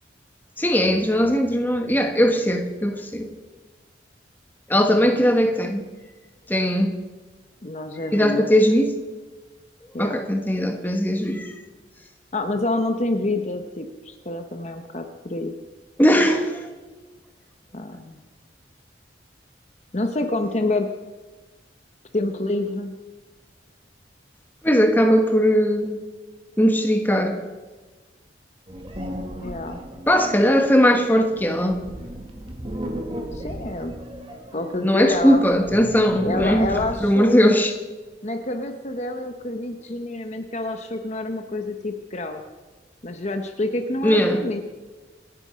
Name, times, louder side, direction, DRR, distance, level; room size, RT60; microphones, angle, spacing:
voice 1, 0.6-3.3 4.7-5.9 6.5-7.0 8.1-9.0 10.0-11.5 16.0-16.7 24.6-26.0 26.6-27.4 30.1-31.8 34.8-37.7 44.0-44.4, equal, 10° left, 1.4 m, -19 dB
voice 2, 7.6-8.5 9.9-10.2 12.3-15.5 17.7-18.2 19.9-20.9 22.1-22.9 29.4-29.8 33.3-33.9 34.5-35.4 36.2-37.4 38.2-42.4 43.0-44.6, left 2 dB, 40° left, 1.0 m, -27 dB
sound 1, 28.7-37.2, equal, 30° right, 2.0 m, -35 dB
27.0 x 9.8 x 5.1 m
head